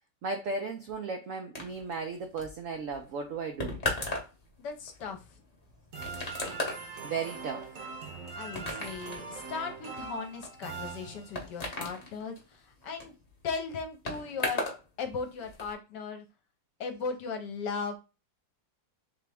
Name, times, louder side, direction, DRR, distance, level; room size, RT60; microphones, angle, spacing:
voice 1, 0.2-3.8 7.0-7.7, right 4 dB, 80° right, 0.7 m, -35 dB
sound 1, 1.5-14.8 15.1-15.7, left 2 dB, 30° left, 0.8 m, -38 dB
voice 2, 4.6-5.4 8.4-13.1 13.4-14.7 15.0-16.2 16.8-18.0, left 5 dB, 70° left, 1.3 m, -37 dB
sound 2, 5.9-11.6, right 4 dB, 55° right, 1.1 m, -42 dB
3.7 x 3.3 x 3.4 m
omnidirectional pair, 2.1 m